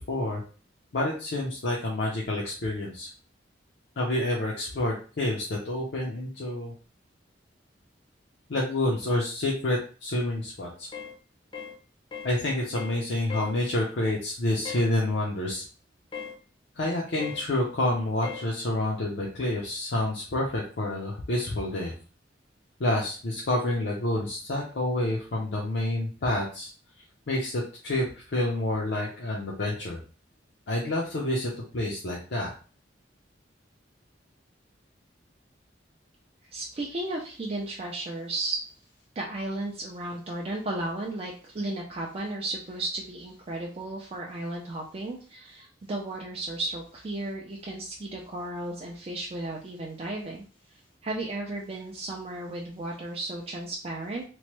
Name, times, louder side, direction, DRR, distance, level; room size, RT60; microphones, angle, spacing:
voice 1, 0.1-0.4 0.9-3.1 4.0-6.7 8.5-10.9 12.2-15.6 16.8-21.9 22.8-26.7 27.3-30.0 30.7-32.5, left 1 dB, 65° left, -4 dB, 0.6 m, -28 dB
sound 1, 10.9-11.2 11.5-11.8 12.1-12.4 12.8-13.0 13.3-13.6 14.7-14.9 16.1-16.4 17.2-17.5 18.2-18.5, left 7 dB, 30° left, 0.6 m, -38 dB
voice 2, 36.5-38.6 39.2-50.4 51.0-54.2, right 2 dB, 35° right, -2 dB, 0.4 m, -34 dB
3.0 x 2.1 x 3.0 m, 0.38 s
head